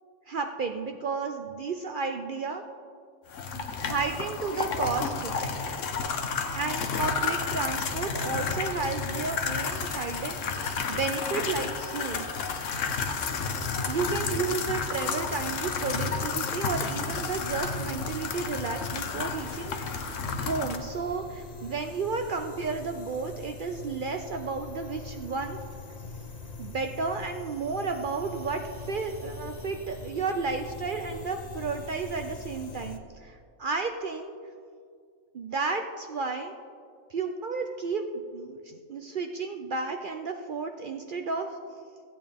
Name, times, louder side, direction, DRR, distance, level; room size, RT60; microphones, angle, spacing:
voice 1, 0.3-2.6 3.6-5.4 6.6-12.2 13.8-20.1 20.4-25.6 26.6-28.6 28.9-34.3 35.3-36.5 37.1-41.5, right 4 dB, 55° right, 5 dB, 0.6 m, -32 dB
sound 1, 3.3-20.8, left 5 dB, 70° left, 1.2 m, -31 dB
sound 2, 17.3-33.0, left 3 dB, 40° left, 0.7 m, -43 dB
15.5 x 8.5 x 3.5 m, 2.2 s
omnidirectional pair, 1.3 m